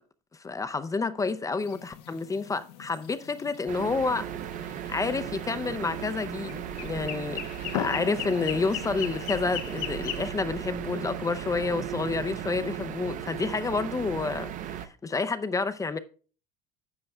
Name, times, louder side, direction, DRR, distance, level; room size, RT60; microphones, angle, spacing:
voice 1, 0.4-4.3 4.9-7.4 7.7-16.0, left 4 dB, 15° left, 0.5 m, -29 dB
sound 1, 1.6-10.3, left 11 dB, 85° left, 0.9 m, -39 dB
sound 2, 3.7-14.9, right 10 dB, 40° right, 0.6 m, -36 dB
12.0 x 7.5 x 2.3 m
supercardioid pair, 100°, 20 cm